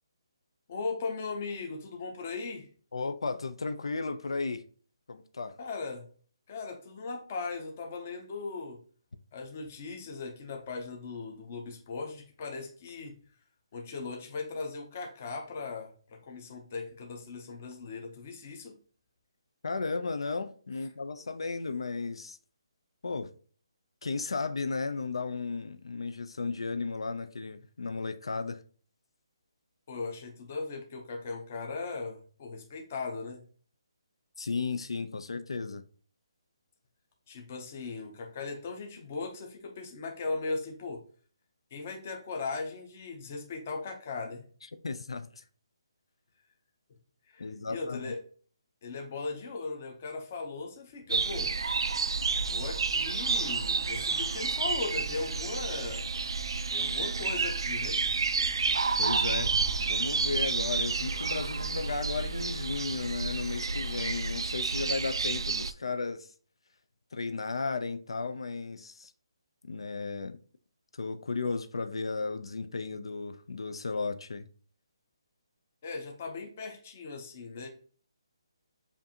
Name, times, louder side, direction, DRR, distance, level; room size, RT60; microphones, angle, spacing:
voice 1, 0.7-2.7 5.6-6.1 6.5-8.8 9.3-13.2 13.7-18.7 29.9-33.4 37.3-41.0 41.7-44.5 47.3-48.2 48.8-51.5 52.4-56.0 56.7-58.0 75.8-77.7, left 4 dB, 20° left, 0.6 m, -38 dB
voice 2, 2.9-4.6 5.1-5.6 19.6-22.4 23.0-23.3 24.0-28.6 34.4-35.8 44.8-45.4 47.4-48.1 59.0-59.5 59.8-66.3 67.1-69.1 69.6-70.4 70.9-74.5, left 4 dB, 75° left, 0.5 m, -34 dB
sound 1, 51.1-65.7, right 4 dB, 65° right, 0.3 m, -30 dB
7.1 x 2.6 x 2.8 m
hypercardioid pair, 180°, 3 cm